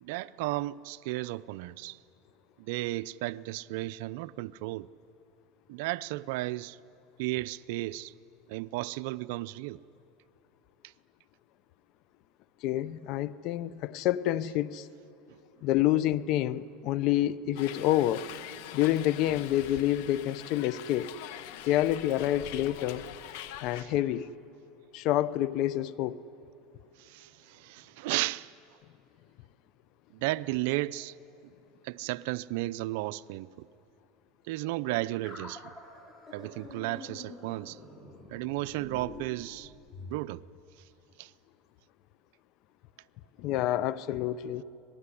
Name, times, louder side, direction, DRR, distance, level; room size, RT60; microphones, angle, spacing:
voice 1, 0.0-2.0 2.6-4.9 5.7-6.8 7.2-8.1 8.5-9.8 23.7-23.9 27.0-28.5 30.1-31.1 31.8-33.7 34.5-35.6 36.3-37.8 38.3-39.7 40.0-40.4 41.2-41.3, right 18 dB, 70° right, 0.5 m, -34 dB
voice 2, 12.6-14.9 15.6-18.3 18.7-21.1 21.7-23.0 23.6-24.3 24.9-26.2 43.4-44.6, left 13 dB, 55° left, 0.7 m, -28 dB
Hiss, 17.6-23.8, left 12 dB, 70° left, 1.3 m, -44 dB
sound 1, 35.2-40.2, left 2 dB, 20° left, 5.9 m, -47 dB
26.0 x 19.5 x 10.0 m
supercardioid pair, 120°, 0 cm